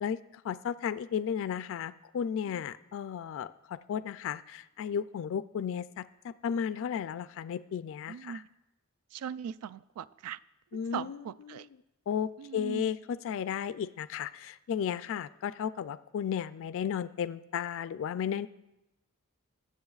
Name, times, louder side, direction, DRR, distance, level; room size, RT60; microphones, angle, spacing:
voice 1, 0.0-8.4 10.7-11.7 12.1-18.5, left 8 dB, 60° left, 14 dB, 0.3 m, -34 dB
voice 2, 8.1-8.4 9.1-10.4 10.7-11.7 12.4-12.9, right 8 dB, 85° right, 17 dB, 0.3 m, -40 dB
21.5 x 7.5 x 2.4 m, 0.94 s
head